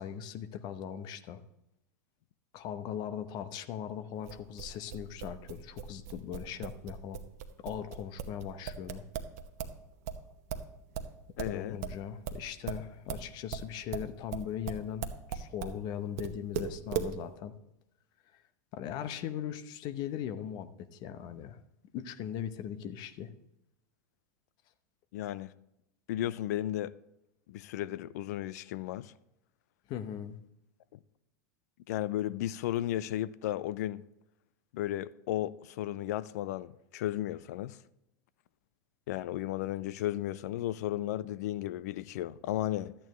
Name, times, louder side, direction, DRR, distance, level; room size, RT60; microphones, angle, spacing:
voice 1, 0.0-1.4 2.5-7.2 7.6-9.0 11.4-17.5 18.3-18.4 18.7-21.6 21.9-23.3 29.9-30.4, left 9 dB, 45° left, 0.8 m, -39 dB
sound 1, 4.2-9.8 10.0-15.8 16.2-17.1, right 8 dB, 60° right, 1.0 m, -38 dB
voice 2, 11.4-11.8 25.1-25.5 26.1-26.9 27.5-29.1 30.9-31.0 31.9-34.0 34.7-37.8 39.1-42.9, left 13 dB, 65° left, 0.4 m, -34 dB
12.5 x 8.8 x 3.1 m
hypercardioid pair, 95°, 10 cm